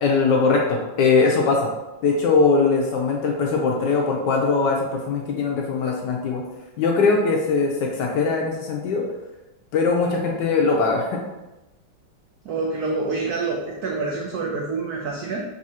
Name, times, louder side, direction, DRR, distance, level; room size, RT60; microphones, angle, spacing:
voice 1, 0.0-1.7 2.0-6.4 6.8-9.0 9.7-11.2, left 4 dB, 75° left, 0 dB, 1.1 m, -21 dB
voice 2, 12.4-15.4, right 3 dB, 85° right, -1 dB, 0.8 m, -27 dB
5.4 x 2.7 x 2.8 m, 1.0 s
omnidirectional pair, 2.3 m